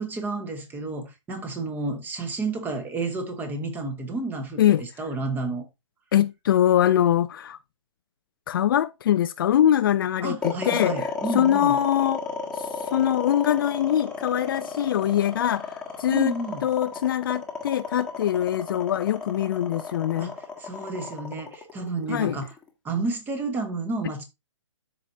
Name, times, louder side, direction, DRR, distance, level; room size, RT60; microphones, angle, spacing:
voice 1, 0.0-5.7 10.2-11.8 16.1-16.7 20.2-22.5 22.8-24.2, right 3 dB, 10° right, 1.3 m, -31 dB
voice 2, 6.1-7.6 8.5-12.3 12.5-16.4 16.6-20.3 22.1-22.4, left 11 dB, 45° left, 0.4 m, -23 dB
sound 1, 10.4-22.7, left 5 dB, 5° left, 1.5 m, -33 dB
13.0 x 4.9 x 2.8 m
hypercardioid pair, 145°, 16 cm